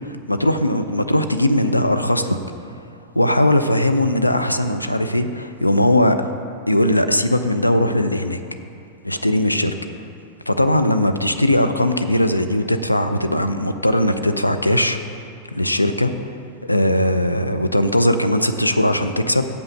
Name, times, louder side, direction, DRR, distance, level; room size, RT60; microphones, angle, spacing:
voice 1, 0.3-2.4 3.2-6.2 6.7-8.4 9.0-9.7 10.5-15.0 15.5-16.1 16.6-19.5, left 1 dB, 85° left, 9 dB, 0.4 m, -19 dB
6.4 x 5.6 x 6.4 m, 2.4 s
figure-of-eight pair, 90°, 0 cm